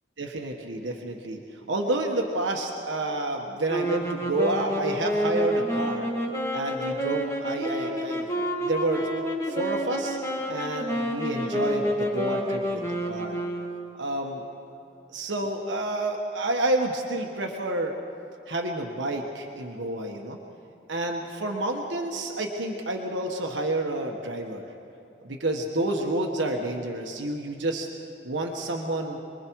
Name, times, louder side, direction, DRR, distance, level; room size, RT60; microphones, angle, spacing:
voice 1, 0.2-6.1 6.5-9.1 9.4-10.2 10.5-13.4 14.0-14.4 15.1-18.0 18.5-20.4 20.9-24.7 25.2-27.9 28.2-29.2, right 2 dB, 90° right, 1 dB, 1.4 m, -29 dB
sound 1, 3.7-14.1, equal, 15° left, 1.9 m, -29 dB
27.5 x 21.0 x 4.7 m, 2.8 s
head